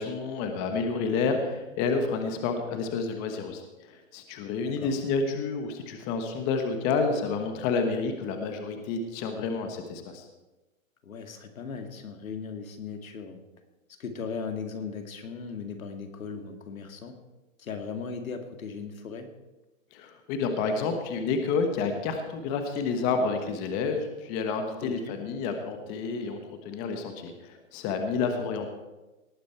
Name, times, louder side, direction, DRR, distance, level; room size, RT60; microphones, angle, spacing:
voice 1, 0.0-10.2 19.9-26.4 26.6-28.7, left 4 dB, 25° left, 6 dB, 1.2 m, -29 dB
voice 2, 4.6-5.0 11.0-13.4 14.0-17.1 17.6-19.3 24.8-25.2 28.2-28.7, left 5 dB, 85° left, 6 dB, 2.3 m, -38 dB
18.5 x 9.2 x 4.6 m, 1.1 s
hypercardioid pair, 155°, 40 cm